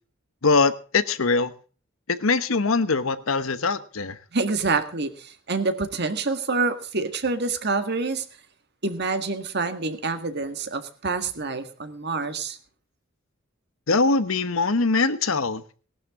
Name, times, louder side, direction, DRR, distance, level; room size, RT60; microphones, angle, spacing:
voice 1, 0.4-1.5 2.1-4.2 13.9-15.6, left 3 dB, 80° left, 1.0 m, -22 dB
voice 2, 4.3-8.2 8.8-12.6, right 3 dB, 55° right, 1.7 m, -27 dB
18.5 x 11.5 x 3.7 m
head